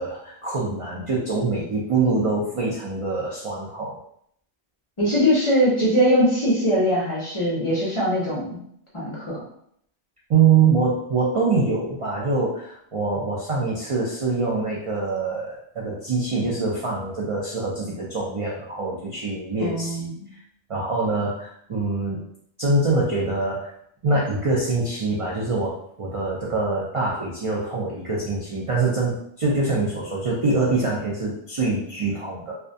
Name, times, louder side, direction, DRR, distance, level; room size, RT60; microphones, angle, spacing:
voice 1, 0.0-4.0 10.3-20.1 20.7-22.2 22.6-23.7 24.0-32.6, right 3 dB, 55° right, -5 dB, 0.3 m, -24 dB
voice 2, 5.0-8.6 8.9-9.4 19.6-20.3, equal, 35° left, -6 dB, 0.5 m, -21 dB
2.3 x 2.1 x 2.5 m, 0.69 s
omnidirectional pair, 1.1 m